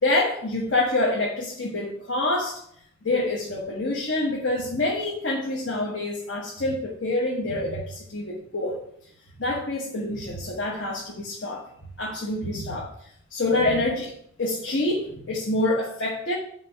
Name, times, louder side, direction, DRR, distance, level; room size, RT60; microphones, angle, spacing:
voice 1, 0.0-2.6 3.0-8.8 9.4-11.7 12.0-14.1 14.4-16.3, left 2 dB, 70° left, -3 dB, 1.1 m, -26 dB
4.8 x 4.4 x 5.8 m, 0.69 s
head